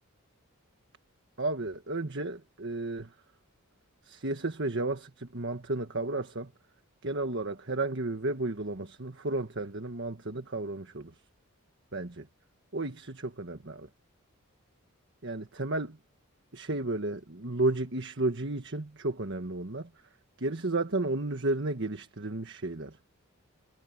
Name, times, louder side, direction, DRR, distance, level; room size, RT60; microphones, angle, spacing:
voice 1, 1.4-3.1 4.0-6.5 7.0-11.1 11.9-12.3 12.7-13.9 15.2-16.0 16.5-19.9 20.4-23.0, right 2 dB, 55° right, 1.6 m, -33 dB
head